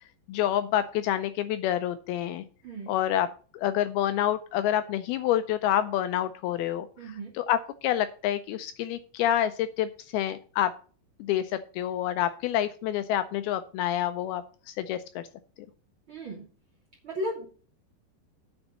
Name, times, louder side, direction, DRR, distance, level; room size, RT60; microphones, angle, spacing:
voice 1, 0.3-2.4 2.9-3.3 3.5-6.9 7.4-10.7 11.2-15.2, left 11 dB, 80° left, 11 dB, 2.3 m, -28 dB
voice 2, 7.0-7.3 16.1-16.5 17.0-17.5, equal, 45° right, -1 dB, 1.7 m, -35 dB
8.8 x 5.1 x 7.0 m, 0.40 s
omnidirectional pair, 4.8 m